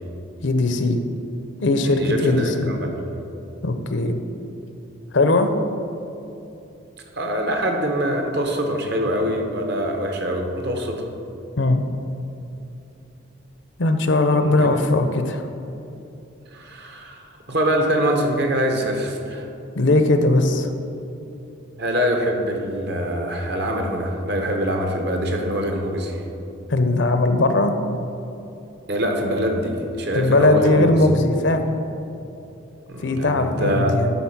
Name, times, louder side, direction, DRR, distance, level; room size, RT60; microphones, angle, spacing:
voice 1, 0.4-1.0 1.6-2.7 3.6-4.2 5.1-5.5 11.6-11.8 13.8-15.4 19.8-20.7 26.7-27.7 30.1-31.8 33.0-34.1, left 2 dB, 60° left, 7 dB, 0.6 m, -19 dB
voice 2, 1.9-2.9 7.1-11.1 14.4-14.8 16.5-19.5 21.8-26.2 28.9-30.9 32.9-34.0, equal, 50° right, 3 dB, 1.0 m, -24 dB
11.5 x 4.1 x 5.8 m, 2.8 s
head